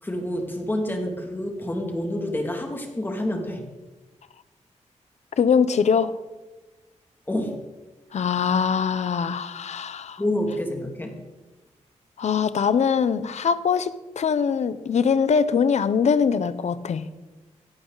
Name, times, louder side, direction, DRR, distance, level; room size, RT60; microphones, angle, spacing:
voice 1, 0.0-3.7 7.3-7.6 10.2-11.1, left 1 dB, 15° left, 2 dB, 2.6 m, -28 dB
voice 2, 5.4-6.2 8.1-10.2 12.2-17.1, left 6 dB, 65° left, 13 dB, 0.9 m, -22 dB
17.0 x 13.5 x 4.1 m, 1.2 s
wide cardioid pair, 120°, 12 cm